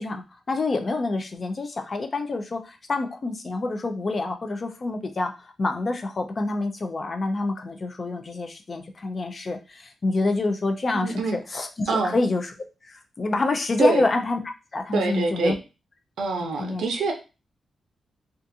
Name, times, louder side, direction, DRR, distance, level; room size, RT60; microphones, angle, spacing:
voice 1, 0.0-12.5 12.8-14.4 14.7-15.5 16.6-16.8, left 3 dB, 40° left, 5 dB, 0.4 m, -27 dB
voice 2, 10.9-11.4 11.9-12.1 13.8-14.0 14.9-15.5 16.2-17.1, right 3 dB, 90° right, 3 dB, 0.6 m, -24 dB
2.5 x 2.4 x 2.6 m, 0.30 s
cardioid pair, 100°, 0 cm